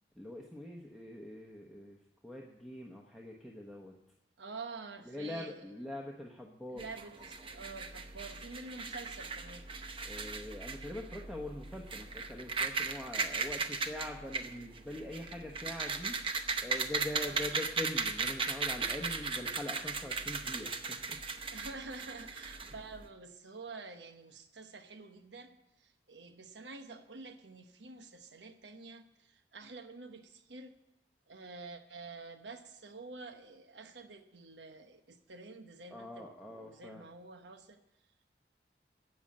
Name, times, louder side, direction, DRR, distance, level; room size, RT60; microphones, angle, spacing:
voice 1, 0.2-2.0 2.2-4.0 5.1-6.9 10.0-21.2 35.9-37.0, left 1 dB, ahead, -1 dB, 1.0 m, -43 dB
voice 2, 4.4-5.8 6.7-9.7 17.2-17.6 21.5-30.8 31.3-37.8, right 3 dB, 85° right, 7 dB, 1.1 m, -48 dB
sound 1, 6.8-23.1, right 4 dB, 30° right, 0.8 m, -37 dB
13.0 x 7.8 x 8.6 m, 0.86 s
head